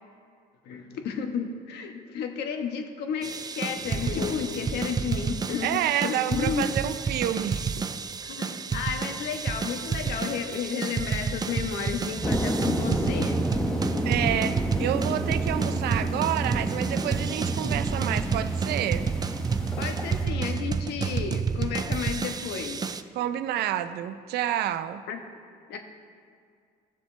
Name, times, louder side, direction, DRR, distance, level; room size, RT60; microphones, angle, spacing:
voice 1, 0.6-6.7 8.2-13.4 19.8-23.0 25.1-25.2 25.7-25.8, left 6 dB, 80° left, 4 dB, 1.3 m, -32 dB
sound 1, 3.2-23.0, right 5 dB, 25° right, 0.4 m, -30 dB
sound 2, 3.8-5.3, left 5 dB, 55° left, 1.1 m, -36 dB
voice 2, 5.6-7.9 14.0-19.1 23.1-25.0, right 11 dB, 75° right, 11 dB, 0.6 m, -29 dB
sound 3, 12.2-20.3, equal, 5° left, 1.0 m, -31 dB
17.0 x 7.4 x 3.3 m, 2.2 s
cardioid pair, 110°, 17 cm